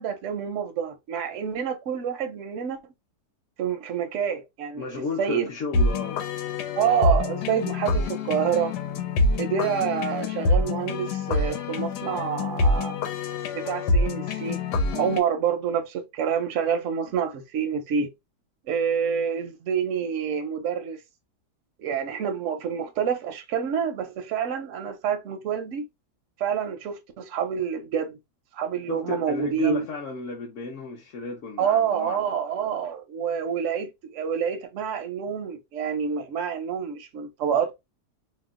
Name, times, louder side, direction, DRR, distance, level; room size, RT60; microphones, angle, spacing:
voice 1, 0.0-2.8 3.6-5.5 6.8-8.7 9.4-13.0 13.5-14.6 14.9-18.1 18.7-21.0 21.8-25.8 26.4-28.2 28.5-29.9 31.6-37.7, right 7 dB, 70° right, 0.7 m, -27 dB
voice 2, 4.7-6.2 28.9-32.2, left 4 dB, 60° left, 0.8 m, -33 dB
sound 1, 5.7-15.2, left 2 dB, 90° left, 1.2 m, -26 dB
2.8 x 2.1 x 3.5 m
omnidirectional pair, 1.8 m